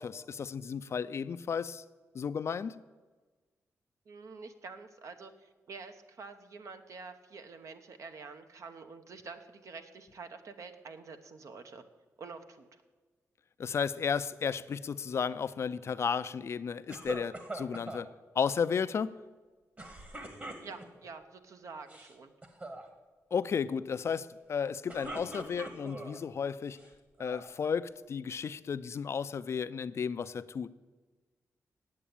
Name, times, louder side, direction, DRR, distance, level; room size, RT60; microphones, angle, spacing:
voice 1, 0.0-1.8 2.1-2.8 13.6-18.1 18.4-19.2 23.3-26.8 27.2-30.7, left 6 dB, 50° left, 0.4 m, -33 dB
voice 2, 4.1-11.8 12.2-12.8 20.6-22.3, right 4 dB, 65° right, 1.0 m, -47 dB
sound 1, 16.9-18.0 19.8-21.1 21.8-22.1 22.4-22.8 24.6-26.2 26.8-27.5, right 2 dB, 30° right, 1.5 m, -43 dB
8.5 x 8.1 x 8.6 m
wide cardioid pair, 115°, 6 cm